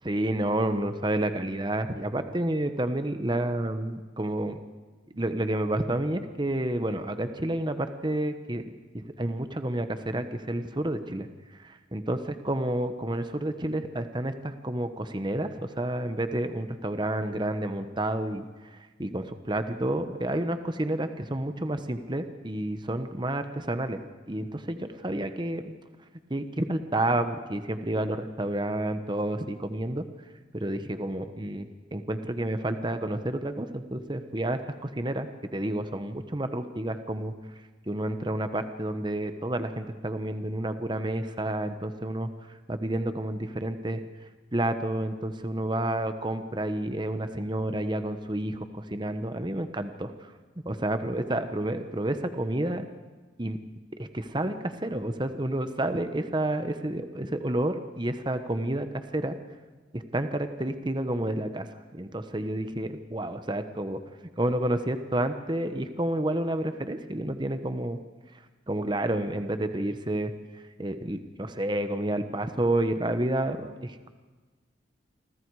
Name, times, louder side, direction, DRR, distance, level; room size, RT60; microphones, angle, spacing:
voice 1, 0.0-4.6 5.1-11.3 11.6-12.2 12.4-18.5 18.7-24.0 24.3-25.8 26.3-30.0 30.5-31.6 31.9-37.3 37.9-42.3 42.7-44.0 44.5-50.3 50.6-52.8 53.4-53.6 54.0-59.4 59.9-61.7 61.9-64.0 64.4-68.0 68.7-70.3 70.8-74.1, right 1 dB, 25° right, 9 dB, 1.1 m, -30 dB
28.0 x 25.5 x 4.8 m, 1.3 s
head